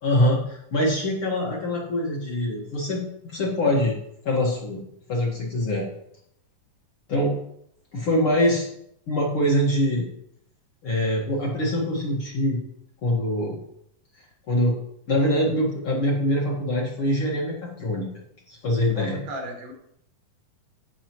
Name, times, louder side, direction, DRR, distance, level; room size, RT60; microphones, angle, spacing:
voice 1, 0.0-3.9 4.2-4.8 5.1-5.9 7.1-7.4 7.9-8.7 9.1-10.0 10.8-12.6 13.0-13.6 14.5-14.8 15.1-18.1 18.5-19.2, left 1 dB, 45° left, -3 dB, 2.1 m, -24 dB
voice 2, 18.9-19.7, right 1 dB, 90° right, 1 dB, 3.7 m, -35 dB
15.5 x 6.2 x 3.1 m, 0.73 s
omnidirectional pair, 4.0 m